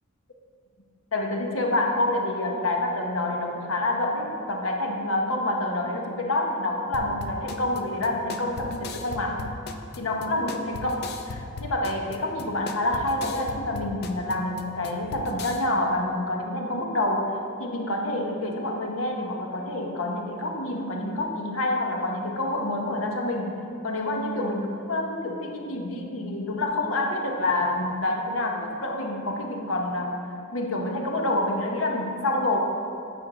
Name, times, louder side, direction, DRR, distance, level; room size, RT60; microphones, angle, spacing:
voice 1, 1.1-9.5 10.0-30.2 30.5-32.6, left 1 dB, 75° left, 2 dB, 1.0 m, -27 dB
sound 1, 6.9-15.6, left 3 dB, 55° left, 0.5 m, -38 dB
9.1 x 4.6 x 5.0 m, 2.6 s
head